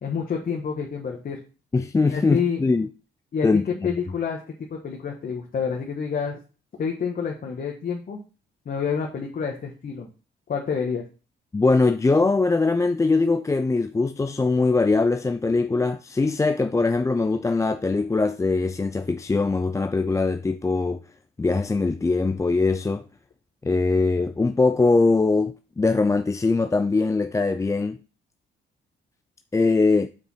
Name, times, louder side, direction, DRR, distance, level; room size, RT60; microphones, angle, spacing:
voice 1, 0.0-1.4 2.0-2.6 3.3-3.5 3.8-4.4 4.7-6.4 6.8-8.2 8.6-10.1 10.5-11.0, left 6 dB, 50° left, 1.4 m, -28 dB
voice 2, 1.7-2.9 3.4-3.9 11.5-21.0 21.4-23.0 23.6-28.0 29.5-30.1, left 3 dB, 15° left, 0.4 m, -22 dB
6.7 x 4.5 x 5.5 m
cardioid pair, 90°, 20 cm